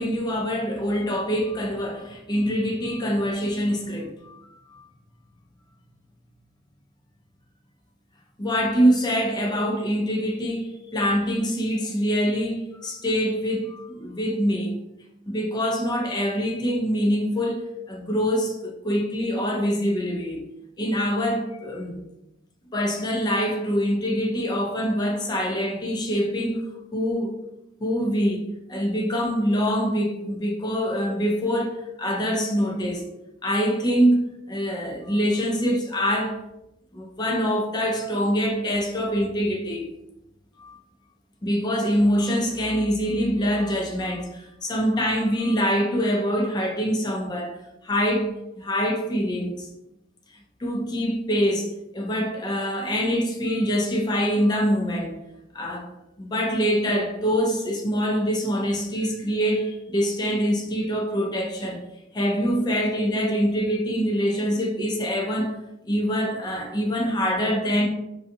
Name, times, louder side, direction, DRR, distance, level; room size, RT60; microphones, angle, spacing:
voice 1, 0.0-4.8 8.4-14.8 15.3-20.4 20.8-22.0 22.7-26.6 26.9-27.3 27.8-33.1 33.4-36.4 36.9-39.9 40.6-40.8 41.4-47.6 47.8-49.7 50.6-55.2 55.5-55.9 56.2-61.8 62.1-65.6 65.9-67.9, equal, 20° left, 0.4 m, -24 dB
2.7 x 2.3 x 2.6 m
head